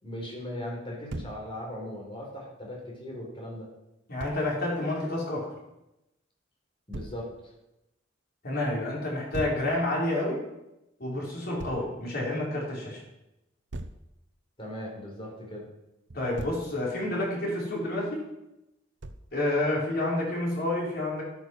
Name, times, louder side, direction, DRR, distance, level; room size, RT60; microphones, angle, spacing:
voice 1, 0.0-3.7 6.9-7.3 14.6-15.7, left 1 dB, 30° left, -1 dB, 4.1 m, -38 dB
Thump thud, 1.1-1.4 4.2-4.4 6.9-7.2 9.3-9.7 11.6-11.9 13.7-14.0 16.1-16.7 19.0-19.3, right 2 dB, 65° right, 0.8 m, -38 dB
voice 2, 4.1-5.5 8.4-10.4 11.0-13.0 16.1-18.3 19.3-21.2, left 1 dB, 55° left, -3 dB, 4.5 m, -29 dB
12.0 x 9.3 x 6.4 m, 0.92 s
head